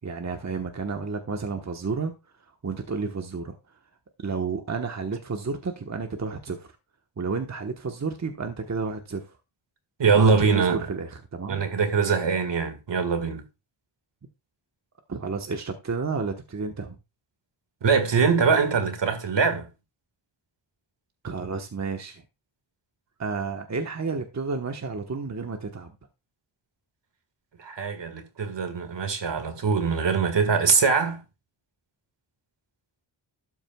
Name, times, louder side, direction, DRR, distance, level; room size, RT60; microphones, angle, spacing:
voice 1, 0.0-2.1 2.6-3.6 4.2-6.7 7.2-9.2 10.1-11.6 15.1-16.9 21.2-22.2 23.2-25.9, right 4 dB, 35° right, 1.2 m, -31 dB
voice 2, 10.0-10.9 11.5-13.4 17.8-19.7 27.6-31.2, right 5 dB, 60° right, 1.9 m, -23 dB
12.5 x 8.5 x 2.3 m
wide cardioid pair, 115°, 48 cm